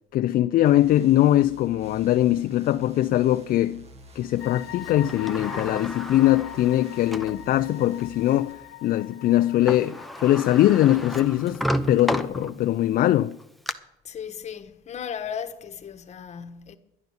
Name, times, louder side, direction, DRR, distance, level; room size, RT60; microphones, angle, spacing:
voice 1, 0.1-3.9 4.2-13.4, left 13 dB, 60° left, 0.4 m, -21 dB
sound 1, 0.6-8.5, right 3 dB, 40° right, 1.3 m, -49 dB
sound 2, 4.4-11.3, left 15 dB, 80° left, 1.0 m, -43 dB
Sliding door, 4.8-7.4 8.0-8.1 9.4-9.5 9.7-12.8 13.3-13.7, equal, ahead, 0.7 m, -32 dB
voice 2, 14.0-16.8, left 8 dB, 40° left, 1.1 m, -36 dB
12.0 x 11.0 x 5.5 m
cardioid pair, 110°, 17 cm